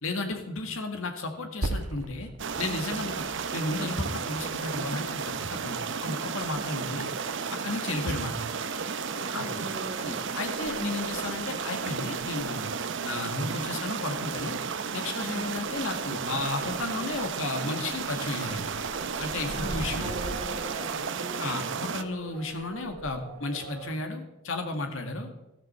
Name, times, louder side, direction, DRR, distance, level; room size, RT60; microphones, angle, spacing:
voice 1, 0.0-2.3 2.6-3.2 3.5-7.1 7.5-8.4 9.3-9.4 10.0-12.7 13.0-14.6 14.9-18.8 19.2-20.2 21.4-25.3, left 2 dB, 65° left, 5 dB, 1.9 m, -33 dB
Percussion, 1.6-6.5, right 1 dB, 90° right, 1.4 m, -39 dB
sound 1, 2.4-22.0, right 5 dB, 55° right, 0.7 m, -33 dB
sound 2, 6.4-24.0, right 2 dB, 75° right, 1.5 m, -46 dB
voice 2, 9.2-10.3 15.2-15.6 19.5-21.6, equal, 25° right, 0 dB, 3.4 m, -40 dB
13.5 x 13.0 x 4.4 m, 0.93 s
head